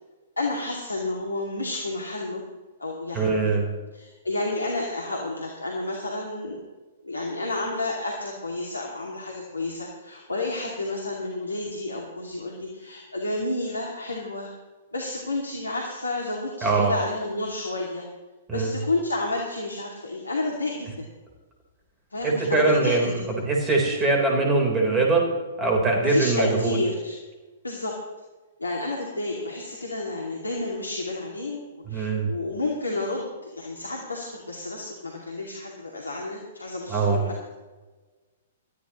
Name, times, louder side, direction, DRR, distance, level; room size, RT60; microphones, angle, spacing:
voice 1, 0.4-2.4 2.8-3.5 3.9-6.6 7.0-14.5 14.9-18.1 18.5-21.1 22.1-23.2 23.9-24.0 26.0-27.2 27.6-27.9 28.6-37.3, left 2 dB, 80° left, -1 dB, 2.4 m, -30 dB
voice 2, 3.1-3.7 16.6-16.9 18.5-18.7 22.2-23.2 23.5-25.2 25.6-26.8 31.9-32.3 36.9-37.2, right 3 dB, 15° right, 0 dB, 4.1 m, -22 dB
22.0 x 13.5 x 3.1 m, 1.2 s
figure-of-eight pair, 110°, 0 cm